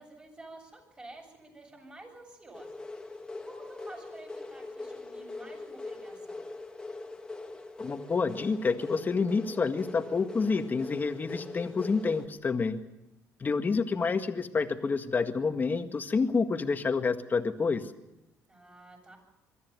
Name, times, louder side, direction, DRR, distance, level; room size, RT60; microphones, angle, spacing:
voice 1, 0.0-3.1 3.4-6.4 18.5-19.2, right 2 dB, 20° right, 2 dB, 7.8 m, -50 dB
sound 1, 2.5-12.3, left 3 dB, 15° left, 2.4 m, -42 dB
voice 2, 7.8-12.8 13.4-17.8, left 4 dB, 30° left, 7 dB, 1.8 m, -28 dB
22.5 x 13.5 x 9.5 m, 0.95 s
cardioid pair, 90°, 6 cm